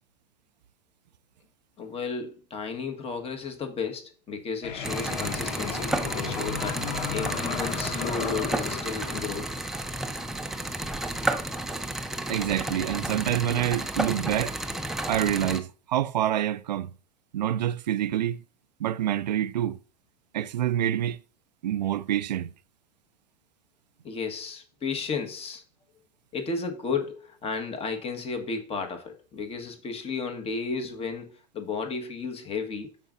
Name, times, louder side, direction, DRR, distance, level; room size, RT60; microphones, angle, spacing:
voice 1, 1.8-9.5 24.0-25.6 26.3-32.9, left 5 dB, 30° left, 1.6 m, -33 dB
sound 1, 4.6-10.6, left 7 dB, 75° left, 0.9 m, -36 dB
sound 2, 4.8-15.6, right 1 dB, ahead, 0.7 m, -31 dB
voice 2, 12.3-14.5 15.1-16.9 17.3-18.4 18.8-19.8 20.3-21.2 21.6-22.5, right 11 dB, 80° right, 0.5 m, -27 dB
13.0 x 5.2 x 2.7 m
hypercardioid pair, 95°, 21 cm